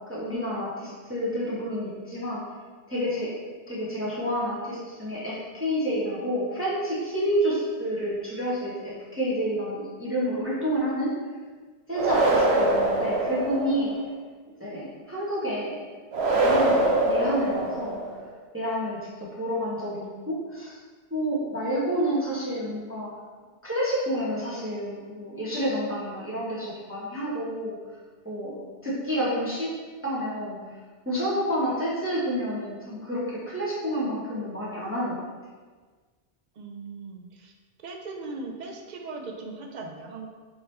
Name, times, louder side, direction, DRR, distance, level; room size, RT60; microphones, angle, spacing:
voice 1, 0.0-2.4 2.9-3.3 3.7-11.1 11.9-13.9 14.6-15.8 16.2-18.0 18.5-20.8 21.1-23.1 23.6-27.7 28.2-29.7 30.0-30.6 31.0-35.2, equal, 10° right, -9 dB, 1.0 m, -29 dB
sound 1, 11.9-14.0 16.1-18.2, right 2 dB, 75° right, 0.9 m, -23 dB
voice 2, 36.6-37.5 37.8-40.3, right 3 dB, 50° right, 2 dB, 0.6 m, -38 dB
4.3 x 3.7 x 3.2 m, 1.4 s
omnidirectional pair, 1.1 m